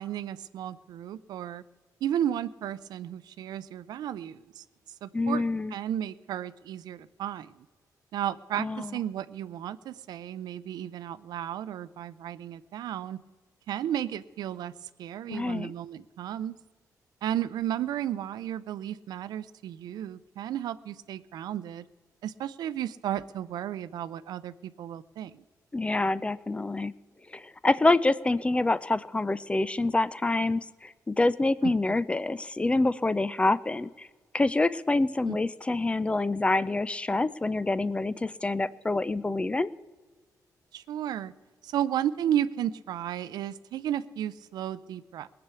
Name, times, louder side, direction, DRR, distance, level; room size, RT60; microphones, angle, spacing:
voice 1, 0.0-1.6 2.0-4.6 5.0-7.6 8.1-13.2 13.7-14.7 15.0-16.6 17.2-21.8 22.2-25.4 31.6-31.7 35.2-35.4 40.7-41.3 41.6-45.3, right 11 dB, 90° right, 16 dB, 0.5 m, -33 dB
voice 2, 5.1-5.7 8.6-9.0 15.3-15.7 25.7-26.9 27.3-34.1 34.3-39.7, left 2 dB, 15° left, 18 dB, 0.4 m, -26 dB
19.5 x 6.9 x 8.2 m, 1.4 s
cardioid pair, 105°, 7 cm